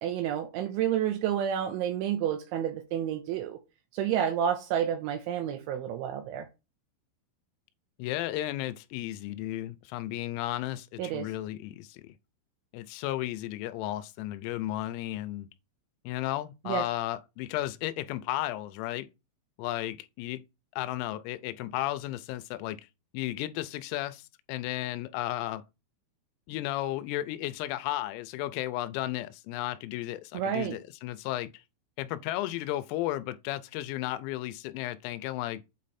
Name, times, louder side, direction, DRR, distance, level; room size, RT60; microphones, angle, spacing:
voice 1, 0.0-3.6 3.9-6.5 11.0-11.3 16.7-16.9 30.3-30.8, right 9 dB, 80° right, 2.8 m, -30 dB
voice 2, 8.0-12.2 12.7-15.5 16.0-19.1 19.6-20.4 20.8-22.8 23.1-25.6 26.5-31.6 32.0-35.6, left 15 dB, 90° left, 3.4 m, -34 dB
8.4 x 3.2 x 4.2 m
omnidirectional pair, 6.0 m